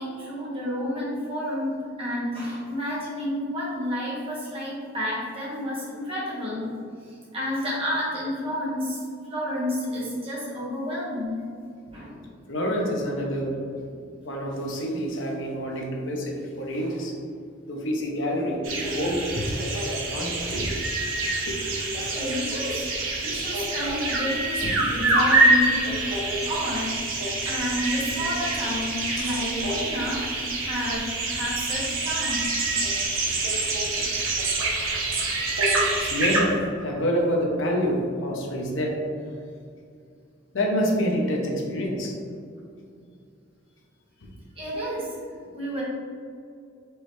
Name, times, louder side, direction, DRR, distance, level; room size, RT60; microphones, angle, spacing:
voice 1, 0.0-6.7 7.0-11.3 11.9-12.2 21.9-22.8 23.2-25.9 26.4-26.9 27.2-32.7 35.7-35.9 44.5-45.1 45.5-45.8, equal, 30° right, -7 dB, 1.3 m, -30 dB
voice 2, 12.5-13.9 14.2-17.2 17.7-20.7 21.4-21.8 23.8-23.9 24.6-24.8 29.2-29.3 33.1-34.2 36.0-39.0 40.5-42.2, equal, 65° left, -1 dB, 0.8 m, -28 dB
sound 1, 18.6-36.4, right 2 dB, 85° right, 0.9 m, -26 dB
4.6 x 3.2 x 3.1 m, 2.3 s
head